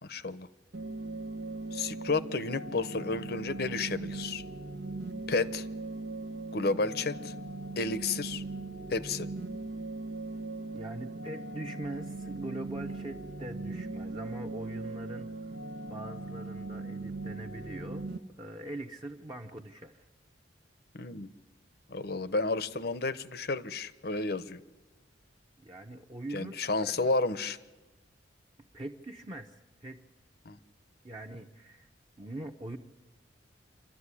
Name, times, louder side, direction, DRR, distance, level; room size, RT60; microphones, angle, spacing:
voice 1, 0.0-0.5 1.7-4.4 5.3-5.7 6.5-7.3 7.8-8.4 8.9-9.3 20.9-21.3 21.9-24.6 26.3-27.6 30.4-30.6, left 3 dB, 55° left, 14 dB, 0.9 m, -31 dB
sound 1, 0.7-18.2, right 2 dB, 85° right, 1.2 m, -39 dB
voice 2, 10.7-15.3 15.9-18.1 18.4-20.0 25.6-27.1 28.7-29.5 29.8-30.0 31.0-31.9 32.2-32.8, right 1 dB, 25° right, 2 dB, 0.8 m, -42 dB
27.5 x 12.5 x 9.8 m, 1.2 s
head